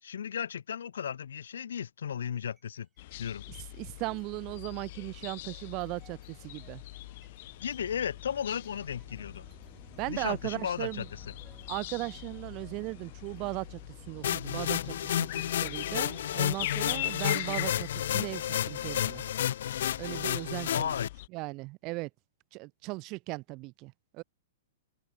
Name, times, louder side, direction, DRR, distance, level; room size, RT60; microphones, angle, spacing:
voice 1, 0.0-2.9 3.2-3.4 7.6-9.4 10.1-11.2 20.7-21.1, left 8 dB, 90° left, 2.7 m, -35 dB
sound 1, 2.3-2.8 3.1-19.7, right 5 dB, 10° right, 3.6 m, -58 dB
sound 2, 3.0-21.3, left 17 dB, 35° left, 1.8 m, -42 dB
voice 2, 3.5-6.8 10.0-11.1 11.7-13.8 14.1-19.2 20.0-20.9 21.3-22.1 22.5-24.2, right 24 dB, 25° right, 0.4 m, -37 dB
sound 3, 14.2-21.1, left 11 dB, 55° left, 0.5 m, -31 dB
open air
hypercardioid pair, 175°, 0 cm